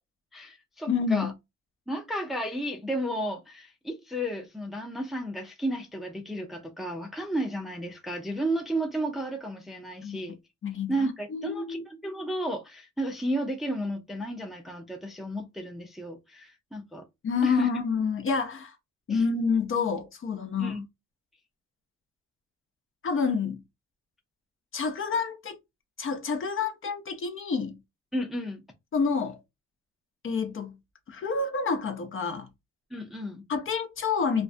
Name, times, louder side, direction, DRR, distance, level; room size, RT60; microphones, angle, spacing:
voice 1, 0.3-1.3 1.9-10.4 10.9-17.0 17.4-17.7 19.1-19.2 20.6-20.8 28.1-28.6 32.9-33.4, right 1 dB, ahead, 0.5 m, -33 dB
voice 2, 0.9-1.3 10.0-10.2 10.6-11.8 17.2-18.8 19.1-20.8 23.0-23.6 24.7-25.6 26.0-27.8 28.9-29.4 30.2-30.8 31.1-32.5 33.5-34.4, left 5 dB, 45° left, 0.7 m, -28 dB
2.5 x 2.2 x 2.4 m
cardioid pair, 90°, 30 cm